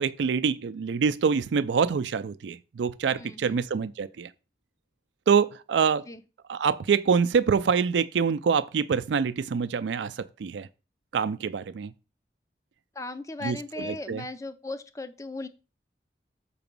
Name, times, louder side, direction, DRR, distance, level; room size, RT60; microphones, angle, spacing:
voice 1, 0.0-4.3 5.3-6.0 6.5-10.7 11.1-11.9 13.4-14.2, right 6 dB, 90° right, 0.4 m, -25 dB
voice 2, 3.1-3.6 6.1-6.2 12.9-15.5, left 2 dB, 20° left, 0.5 m, -37 dB
6.8 x 5.8 x 5.3 m
head